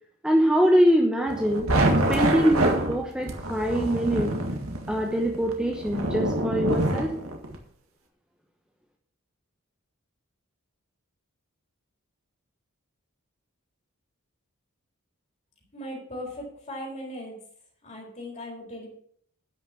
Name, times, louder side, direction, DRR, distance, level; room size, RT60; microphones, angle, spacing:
voice 1, 0.2-1.7 2.1-4.3 4.9-7.1, equal, 5° right, 0 dB, 1.0 m, -23 dB
sound 1, 1.3-7.6, right 1 dB, 80° right, 1.8 m, -26 dB
voice 2, 15.7-17.4 17.8-18.9, left 1 dB, 35° left, -1 dB, 4.4 m, -38 dB
11.0 x 6.5 x 6.2 m, 0.64 s
head